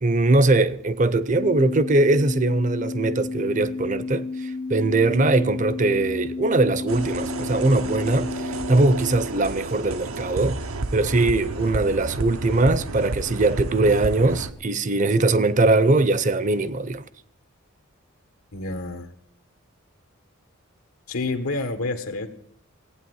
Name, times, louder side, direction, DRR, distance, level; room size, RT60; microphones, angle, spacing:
voice 1, 0.0-10.6 10.9-17.0, right 2 dB, 35° right, 0.6 m, -21 dB
sound 1, 1.4-9.3, left 3 dB, 30° left, 0.5 m, -32 dB
sound 2, 6.9-14.5, right 2 dB, 85° right, 1.0 m, -31 dB
voice 2, 18.5-19.1 21.1-22.3, left 3 dB, 90° left, 1.4 m, -28 dB
16.0 x 9.0 x 7.9 m
head